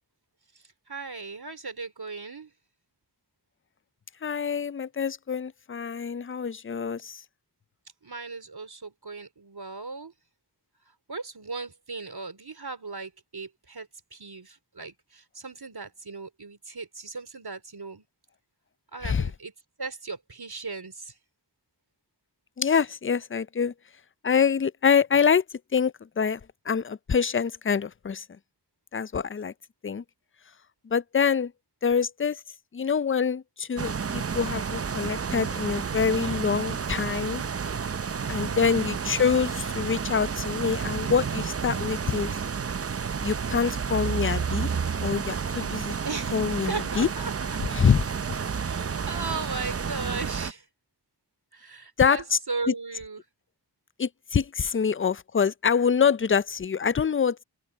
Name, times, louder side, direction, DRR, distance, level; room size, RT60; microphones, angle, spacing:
voice 1, 0.9-2.5 8.0-10.1 11.1-18.0 18.9-19.5 19.8-21.1 38.5-38.9 46.0-47.6 48.6-50.7 51.5-53.2, right 4 dB, 65° right, 3.4 m, -37 dB
voice 2, 4.2-7.2 19.0-19.3 22.6-23.7 24.2-25.4 25.7-26.4 26.7-28.3 28.9-29.5 29.8-30.0 30.8-31.5 31.8-32.4 32.7-37.4 38.3-42.3 43.2-44.7 45.0-45.9 46.3-47.1 47.7-48.0 52.0-52.4 52.7-52.8 54.0-57.4, left 6 dB, 30° left, 0.4 m, -25 dB
sound 1, 33.8-50.5, right 6 dB, 35° right, 0.5 m, -31 dB
open air
wide cardioid pair, 45°, 40 cm